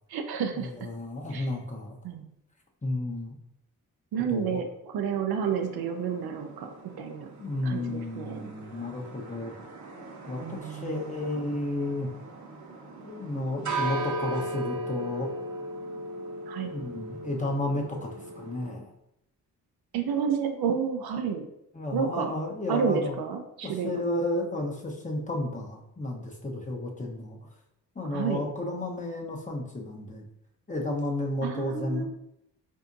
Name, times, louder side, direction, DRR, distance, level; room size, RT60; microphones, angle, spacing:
voice 1, 0.1-0.7 1.3-1.5 2.0-2.2 4.1-7.3 7.6-8.4 10.4-10.9 16.5-16.7 19.9-21.5 21.9-22.3 22.7-23.9 28.1-28.4 31.4-32.1, right 6 dB, 70° right, 5 dB, 0.6 m, -30 dB
voice 2, 0.6-2.0 2.8-3.4 4.2-4.6 7.4-9.5 10.3-12.1 13.0-15.3 16.6-18.9 21.7-23.1 23.6-27.4 27.9-30.3 30.7-32.1, left 1 dB, 20° left, -1 dB, 0.9 m, -32 dB
sound 1, 5.4-18.7, right 2 dB, 45° right, 0.9 m, -38 dB
4.2 x 2.7 x 2.5 m, 0.80 s
supercardioid pair, 50°, 39 cm